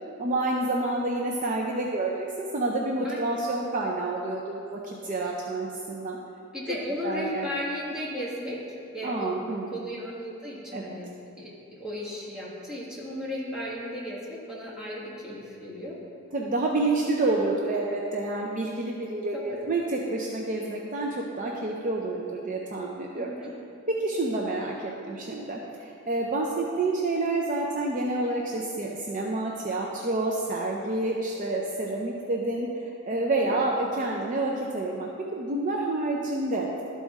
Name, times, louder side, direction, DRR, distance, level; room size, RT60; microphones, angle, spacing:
voice 1, 0.2-6.2 7.0-7.5 9.0-9.8 10.7-11.0 16.3-23.3 24.0-32.7 33.1-36.7, right 2 dB, 35° right, -1 dB, 0.5 m, -28 dB
voice 2, 3.0-3.3 6.5-8.6 8.9-9.4 9.7-11.1 11.4-11.5 11.8-16.0 19.3-19.7 23.1-23.5 33.4-33.7, equal, 5° right, -7 dB, 1.4 m, -35 dB
12.0 x 4.1 x 3.5 m, 2.7 s
head